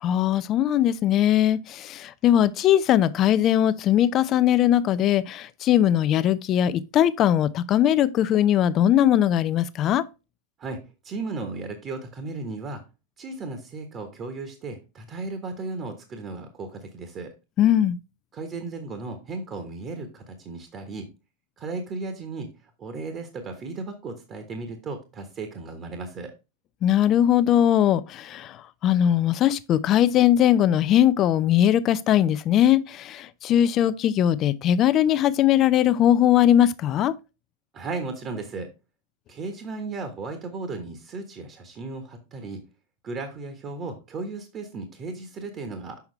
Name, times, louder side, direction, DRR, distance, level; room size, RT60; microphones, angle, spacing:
voice 1, 0.0-10.0 17.6-18.0 26.8-37.1, left 11 dB, 35° left, 0.5 m, -20 dB
voice 2, 10.6-12.8 13.2-17.3 18.3-21.1 21.6-22.5 22.8-26.3 37.7-38.7 39.3-42.6 43.0-46.0, right 3 dB, 30° right, 1.3 m, -35 dB
7.0 x 5.8 x 3.2 m
figure-of-eight pair, 90°, 0 cm